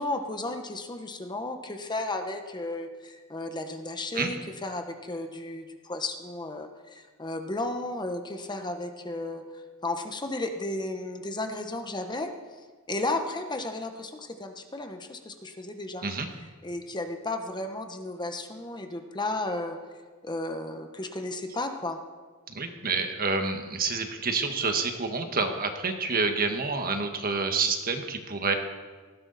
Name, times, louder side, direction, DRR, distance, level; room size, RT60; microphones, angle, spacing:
voice 1, 0.0-9.4 9.8-12.3 12.9-16.1 16.6-19.8 20.2-22.0, left 2 dB, 20° left, 5 dB, 1.1 m, -34 dB
voice 2, 22.5-28.5, right 4 dB, 45° right, 5 dB, 1.5 m, -28 dB
18.5 x 15.5 x 4.2 m, 1.4 s
head